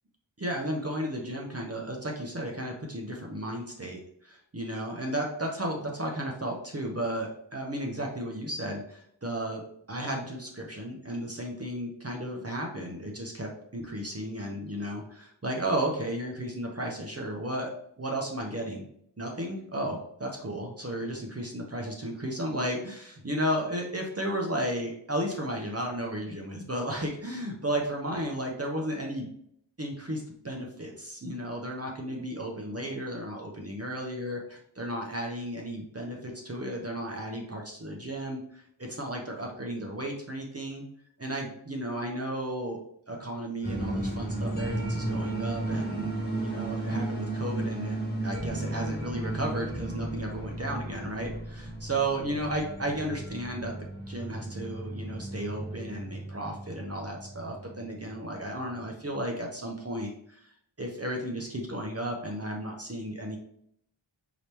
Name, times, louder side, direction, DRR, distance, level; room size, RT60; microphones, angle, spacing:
voice 1, 0.4-9.6 9.9-17.7 18.0-18.8 19.2-29.3 29.8-40.8 41.2-42.8 43.1-53.7 54.1-60.4 60.8-63.4, right 1 dB, 30° right, 0 dB, 0.9 m, -34 dB
sound 1, 43.6-58.7, right 2 dB, 20° left, 1.5 m, -34 dB
4.9 x 2.9 x 3.3 m, 0.68 s
wide cardioid pair, 60°, 48 cm